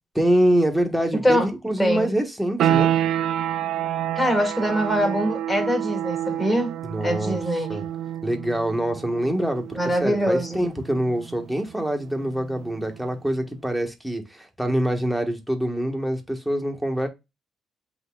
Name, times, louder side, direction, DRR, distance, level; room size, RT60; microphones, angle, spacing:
voice 1, 0.1-2.9 6.8-7.4 7.7-7.8 8.2-17.1, right 1 dB, ahead, 1.4 m, -25 dB
voice 2, 1.1-1.5 1.8-2.1 4.2-6.7 7.0-7.9 9.7-10.6, equal, 15° left, 2.2 m, -23 dB
sound 1, 2.6-13.1, right 11 dB, 75° right, 0.5 m, -28 dB
7.8 x 2.9 x 2.3 m
cardioid pair, 90°, 0 cm